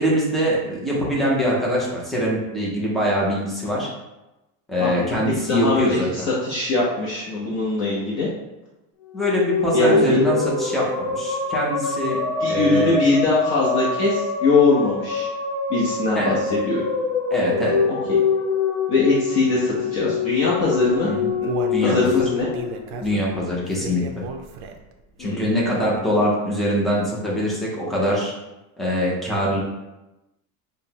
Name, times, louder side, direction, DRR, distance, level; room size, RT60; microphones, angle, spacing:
voice 1, 0.0-3.9 4.7-6.1 9.1-12.2 12.4-13.0 16.1-16.3 17.3-17.8 21.0-21.3 21.7-22.2 23.0-24.0 25.2-28.3 28.8-29.6, equal, ahead, -5 dB, 0.4 m, -23 dB
voice 2, 4.8-5.2 5.5-8.3 9.7-10.2 12.4-15.3 15.7-16.8 17.9-18.2 18.9-21.1 21.4-21.5 21.8-22.5 25.2-25.7, left 3 dB, 40° left, -6 dB, 0.7 m, -22 dB
sound 1, 9.0-23.5, left 5 dB, 60° left, 1.0 m, -24 dB
Human voice, 20.8-25.0 25.4-25.5 26.0-26.1, right 6 dB, 60° right, 0.5 m, -33 dB
5.4 x 2.1 x 2.8 m, 0.99 s
cardioid pair, 170°, 43 cm